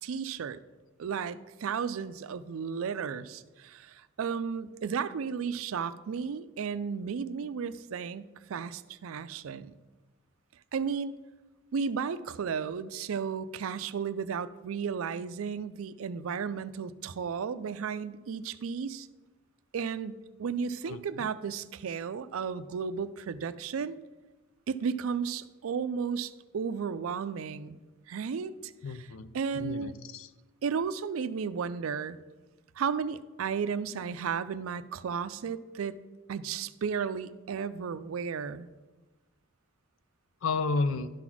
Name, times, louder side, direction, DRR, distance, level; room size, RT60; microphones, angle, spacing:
voice 1, 0.0-0.6 1.0-9.8 10.7-11.1 11.7-19.1 19.7-24.0 24.7-27.8 28.1-29.9 30.6-32.2 32.8-36.0 36.3-38.7, right 6 dB, 80° right, 14 dB, 0.4 m, -34 dB
voice 2, 28.8-29.3 29.5-30.3 40.4-41.1, left 3 dB, 75° left, 14 dB, 0.5 m, -31 dB
11.5 x 4.0 x 6.0 m, 1.2 s
head